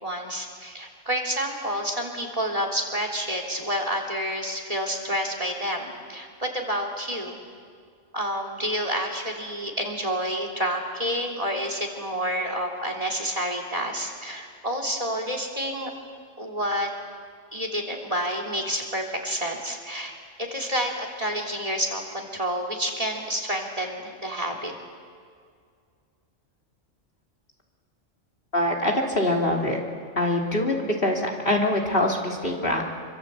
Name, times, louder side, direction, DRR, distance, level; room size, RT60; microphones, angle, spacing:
voice 1, 0.0-7.4 8.1-15.9 16.4-16.9 17.5-24.7, equal, 30° right, 2 dB, 3.4 m, -29 dB
voice 2, 28.5-29.8 30.2-32.8, left 1 dB, 50° left, 0 dB, 3.3 m, -24 dB
27.5 x 25.0 x 8.2 m, 2.1 s
omnidirectional pair, 1.3 m